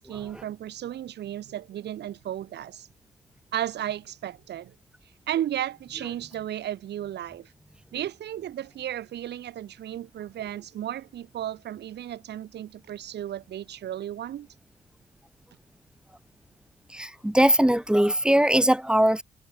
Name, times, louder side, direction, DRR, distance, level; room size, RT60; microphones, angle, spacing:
voice 1, 0.0-2.9 3.5-4.7 5.3-7.5 7.9-14.5, right 11 dB, 60° right, 1.1 m, -34 dB
voice 2, 16.9-19.2, right 1 dB, 5° right, 0.9 m, -21 dB
hypercardioid pair, 55°, 20 cm